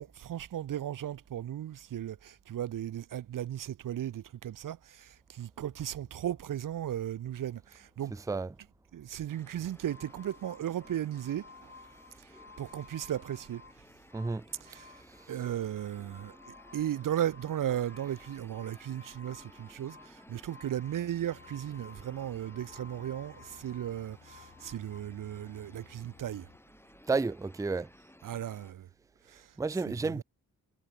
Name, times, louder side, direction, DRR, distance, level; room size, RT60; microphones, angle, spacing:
voice 1, 0.0-8.1 8.9-11.7 12.6-13.6 14.6-14.9 15.3-26.5 28.2-28.9 29.3-29.5 29.9-30.2, right 11 dB, 60° right, 0.6 m, -36 dB
sound 1, 9.3-28.7, left 1 dB, 5° left, 3.6 m, -57 dB
sound 2, 9.8-13.8 14.1-25.0, left 4 dB, 35° left, 5.2 m, -55 dB
voice 2, 14.1-14.4 27.1-27.9 29.6-30.2, right 4 dB, 10° right, 0.4 m, -31 dB
sound 3, 20.8-26.6, left 7 dB, 70° left, 4.8 m, -59 dB
cardioid pair, 70°, 37 cm